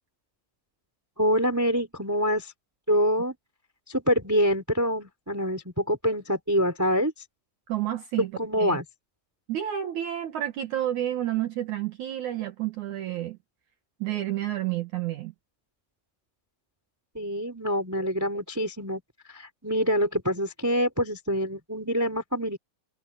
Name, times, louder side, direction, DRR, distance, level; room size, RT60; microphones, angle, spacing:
voice 1, 1.2-2.5 2.9-3.3 3.9-7.1 8.4-8.8 17.1-19.0 19.3-22.6, equal, 5° right, 3.5 m, -26 dB
voice 2, 7.7-8.3 8.6-8.8 9.5-13.4 14.0-15.3, right 12 dB, 65° right, 2.6 m, -30 dB
omnidirectional pair, 4.0 m